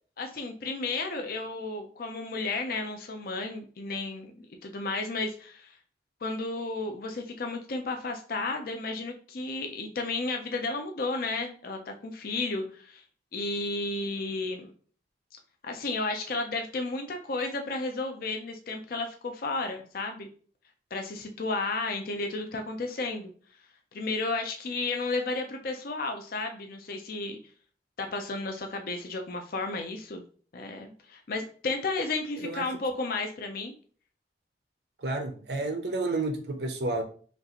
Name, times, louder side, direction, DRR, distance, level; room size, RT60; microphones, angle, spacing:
voice 1, 0.2-4.3 4.6-5.7 6.2-13.0 13.3-14.7 15.6-20.3 20.9-23.3 23.9-27.4 28.0-30.2 30.5-33.7, left 3 dB, 55° left, 4 dB, 0.6 m, -33 dB
voice 2, 35.0-37.0, right 2 dB, 65° right, 5 dB, 0.7 m, -31 dB
5.1 x 2.5 x 2.9 m, 0.43 s
head